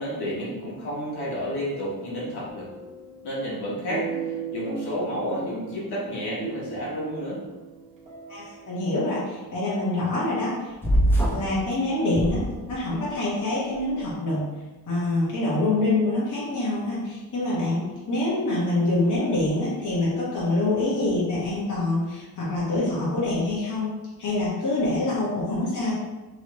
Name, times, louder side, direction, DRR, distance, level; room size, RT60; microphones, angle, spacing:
voice 1, 0.0-2.6 3.2-4.0 4.5-7.4, equal, 80° left, -7 dB, 1.3 m, -30 dB
sound 1, 2.5-9.5, right 6 dB, 20° right, 0.7 m, -38 dB
voice 2, 8.3-10.7 11.3-12.4 12.7-14.4 14.9-25.9, left 2 dB, 50° left, -8 dB, 1.1 m, -25 dB
sound 2, 10.8-11.6 12.1-13.0, right 1 dB, 5° left, 0.4 m, -23 dB
3.1 x 2.8 x 3.0 m, 1.1 s
wide cardioid pair, 160°, 38 cm